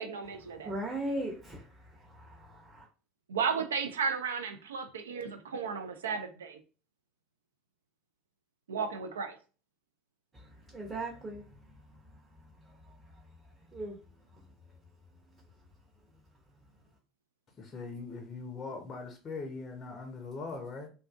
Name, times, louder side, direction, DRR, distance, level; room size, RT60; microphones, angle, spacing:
voice 1, 0.0-0.7 3.3-6.6 8.7-9.4, right 6 dB, 80° right, 0.3 m, -34 dB
voice 2, 0.6-1.6 2.5-2.8 10.7-11.4 13.7-13.9, right 1 dB, 25° right, 0.8 m, -36 dB
voice 3, 17.6-20.9, left 4 dB, 35° left, 0.5 m, -41 dB
2.5 x 2.4 x 2.3 m
figure-of-eight pair, 70°, 0 cm